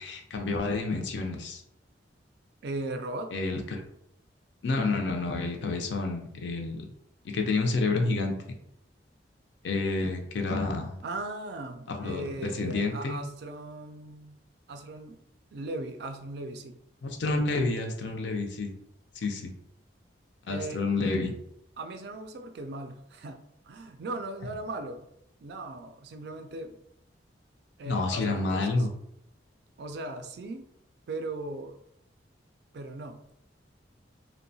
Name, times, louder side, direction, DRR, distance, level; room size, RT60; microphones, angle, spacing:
voice 1, 0.0-1.6 3.3-3.8 4.6-6.9 7.2-8.4 9.6-11.0 11.9-13.2 17.0-18.7 19.2-19.5 20.5-21.3 27.9-28.9, left 3 dB, 65° left, 3 dB, 0.4 m, -29 dB
voice 2, 2.6-3.3 10.0-10.1 11.0-14.4 14.7-15.2 15.5-16.8 20.5-20.8 21.8-25.1 25.4-26.7 27.8-28.9 29.8-30.6 31.1-31.8 32.7-33.2, right 2 dB, 60° right, 6 dB, 0.3 m, -38 dB
2.7 x 2.1 x 2.6 m, 0.75 s
head